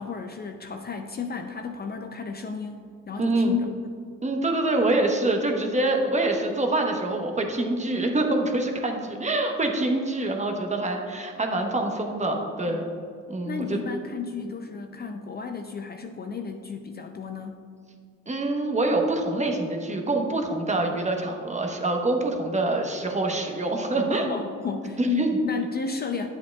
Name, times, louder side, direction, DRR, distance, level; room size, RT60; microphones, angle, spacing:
voice 1, 0.0-3.7 12.7-12.8 13.5-17.6 24.3-26.3, left 6 dB, 35° left, 5 dB, 0.5 m, -32 dB
voice 2, 3.2-3.6 4.2-12.8 13.3-13.8 18.3-24.3 25.0-25.3, right 2 dB, 25° right, 2 dB, 1.0 m, -25 dB
9.2 x 7.8 x 2.3 m, 2.3 s
cardioid pair, 90°, 30 cm